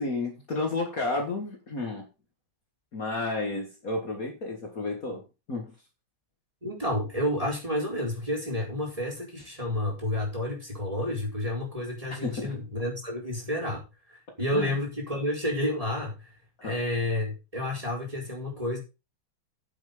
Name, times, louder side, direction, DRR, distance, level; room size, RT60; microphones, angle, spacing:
voice 1, 0.0-2.1 2.9-5.7 12.2-12.6 14.5-14.8 16.6-16.8, left 2 dB, 45° left, 2 dB, 2.2 m, -32 dB
voice 2, 6.6-16.3 16.6-18.8, left 1 dB, 15° right, -1 dB, 4.2 m, -30 dB
9.2 x 7.5 x 5.1 m, 0.28 s
omnidirectional pair, 2.2 m